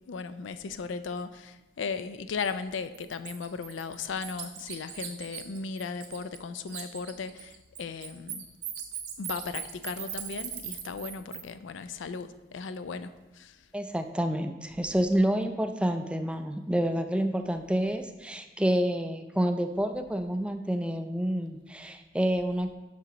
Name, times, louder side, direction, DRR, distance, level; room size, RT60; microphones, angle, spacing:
voice 1, 0.1-7.5 7.8-8.4 9.2-13.6, left 5 dB, 85° left, 12 dB, 0.4 m, -36 dB
Bird, 2.4-2.5 2.9-6.4 6.7-11.4, right 9 dB, 65° right, 0.9 m, -39 dB
voice 2, 13.7-22.7, right 1 dB, 5° right, 8 dB, 0.3 m, -28 dB
7.2 x 5.9 x 3.9 m, 1.1 s
head